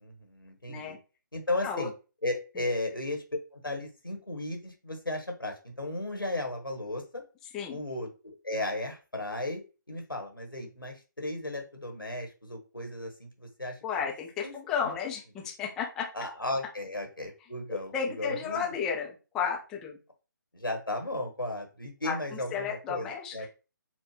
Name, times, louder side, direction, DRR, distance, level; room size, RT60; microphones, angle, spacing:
voice 1, 0.0-0.9 1.3-1.9 2.2-3.2 3.5-7.2 7.7-9.6 9.9-13.8 14.4-14.5 16.1-18.6 20.5-23.5, left 2 dB, 85° left, 4 dB, 1.2 m, -35 dB
voice 2, 7.4-7.8 13.8-16.1 17.7-20.0 22.0-23.5, left 6 dB, 5° left, -1 dB, 0.3 m, -33 dB
4.3 x 2.1 x 3.0 m, 0.32 s
figure-of-eight pair, 145°, 11 cm